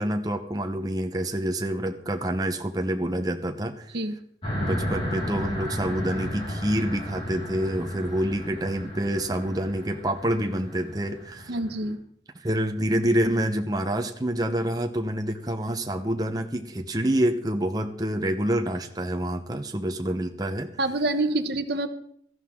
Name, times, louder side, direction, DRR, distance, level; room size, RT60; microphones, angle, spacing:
voice 1, 0.0-3.9 4.6-11.5 12.4-20.7, right 1 dB, 20° right, 5 dB, 0.8 m, -27 dB
sound 1, 4.4-11.9, equal, 30° left, 4.6 m, -34 dB
voice 2, 11.5-12.0 20.8-21.9, right 2 dB, 65° right, 10 dB, 1.0 m, -26 dB
17.0 x 13.5 x 3.7 m, 0.66 s
head